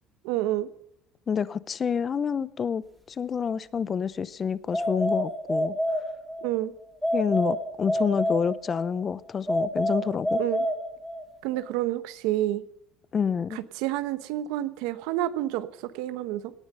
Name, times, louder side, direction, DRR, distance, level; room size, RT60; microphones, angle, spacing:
voice 1, 0.2-0.7 6.4-6.7 10.4-10.6 11.4-12.6 13.5-16.5, right 14 dB, 85° right, 14 dB, 1.0 m, -29 dB
voice 2, 1.3-2.8 3.1-5.7 7.1-10.4 13.1-13.6, left 6 dB, 30° left, 18 dB, 0.7 m, -28 dB
sound 1, 4.7-6.5 7.0-8.9 9.5-11.3, equal, ahead, 3.0 m, -28 dB
17.5 x 10.0 x 6.8 m, 0.78 s
cardioid pair, 120°, 0 cm